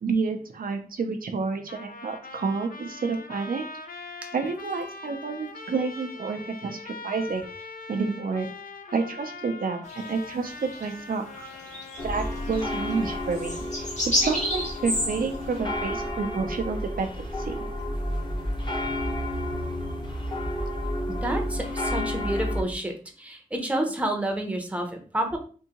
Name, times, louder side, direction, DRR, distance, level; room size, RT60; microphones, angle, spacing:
voice 1, 0.0-3.6 4.3-7.4 7.9-8.5 8.9-11.3 12.0-17.6, right 4 dB, 70° right, 5 dB, 0.5 m, -29 dB
Trumpet, 1.7-13.3, left 3 dB, 70° left, 0.5 m, -42 dB
sound 1, 9.9-10.1 10.7-10.8 11.1-15.4, equal, 50° left, 1.2 m, -30 dB
sound 2, 12.0-22.6, left 1 dB, 30° left, 0.9 m, -31 dB
voice 2, 21.2-25.4, right 1 dB, 10° right, 2 dB, 0.7 m, -29 dB
3.6 x 2.6 x 2.8 m, 0.41 s
wide cardioid pair, 90°, 15 cm